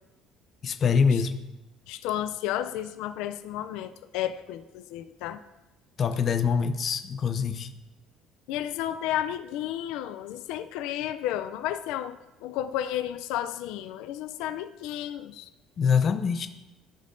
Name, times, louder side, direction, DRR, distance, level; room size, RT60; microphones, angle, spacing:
voice 1, 0.6-1.3 6.0-7.7 15.8-16.5, left 6 dB, 30° left, 9 dB, 0.5 m, -24 dB
voice 2, 1.9-5.4 8.5-15.5, left 12 dB, 90° left, 11 dB, 0.4 m, -32 dB
15.0 x 5.4 x 2.6 m, 1.0 s
cardioid pair, 175°, 0 cm